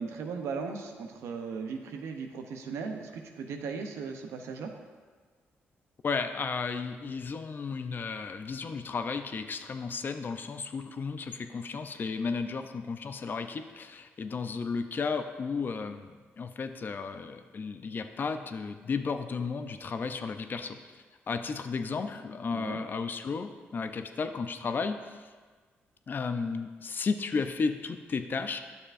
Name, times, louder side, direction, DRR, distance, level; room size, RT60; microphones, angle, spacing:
voice 1, 0.0-4.7 22.5-22.8, right 5 dB, 85° right, 4 dB, 0.7 m, -37 dB
voice 2, 6.0-20.8 21.3-25.3 26.1-28.6, left 5 dB, 45° left, 8 dB, 0.5 m, -33 dB
9.9 x 6.7 x 2.6 m, 1.5 s
cardioid pair, 75°, 5 cm